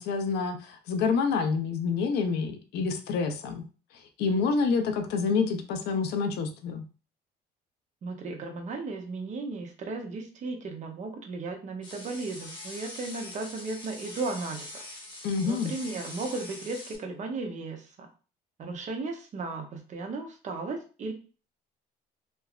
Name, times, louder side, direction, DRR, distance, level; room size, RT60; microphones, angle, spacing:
voice 1, 0.0-3.6 4.2-6.8 15.2-15.7, left 5 dB, 75° left, 7 dB, 0.5 m, -27 dB
voice 2, 8.0-14.7 15.4-18.1 18.6-21.1, right 3 dB, 45° right, 4 dB, 0.7 m, -35 dB
sound 1, 11.8-17.0, left 2 dB, 25° left, 0.8 m, -43 dB
3.3 x 2.0 x 2.3 m, 0.36 s
cardioid pair, 110°, 17 cm